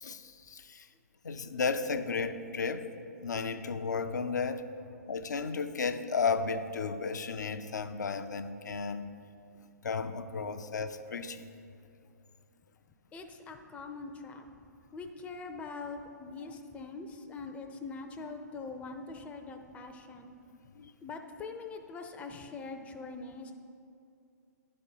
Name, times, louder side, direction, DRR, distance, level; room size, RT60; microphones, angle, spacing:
voice 1, 0.0-0.9 1.2-2.9 3.2-4.7 5.1-9.1 9.8-11.5 20.8-20.9, left 5 dB, 75° left, 10 dB, 0.5 m, -33 dB
voice 2, 13.1-14.5 14.9-20.3 21.0-23.5, left 4 dB, 15° left, 4 dB, 0.5 m, -43 dB
10.5 x 4.2 x 5.4 m, 2.5 s
figure-of-eight pair, 120°, 10 cm